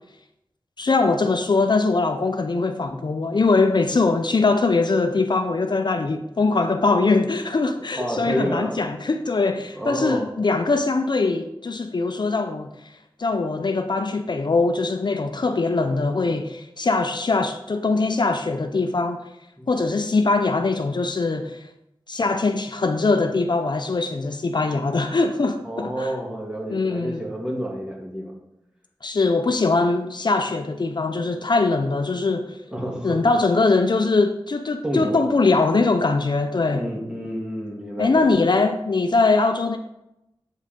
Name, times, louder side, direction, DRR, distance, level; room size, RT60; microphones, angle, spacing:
voice 1, 0.8-19.2 19.7-21.6 22.1-26.1 26.7-27.2 29.0-32.6 33.0-36.9 38.0-39.8, left 3 dB, 55° left, 0.6 m, -22 dB
voice 2, 8.0-8.8 9.7-10.2 19.6-19.7 25.6-28.3 32.7-33.2 34.8-35.3 36.7-38.4, equal, 10° right, 2.3 m, -29 dB
8.3 x 5.3 x 5.2 m
wide cardioid pair, 75°, 9 cm